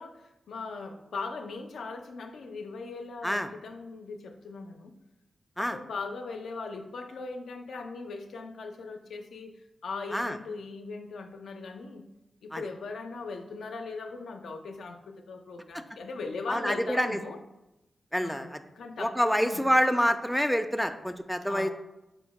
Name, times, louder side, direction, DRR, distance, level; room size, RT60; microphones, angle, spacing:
voice 1, 0.0-5.0 5.6-12.1 12.4-17.4 18.2-19.6 21.4-21.7, left 4 dB, 90° left, 4 dB, 0.4 m, -39 dB
voice 2, 16.5-17.2 18.1-18.6 19.0-21.7, equal, ahead, 7 dB, 0.3 m, -27 dB
5.1 x 2.1 x 4.6 m, 0.96 s
cardioid pair, 60°, 0 cm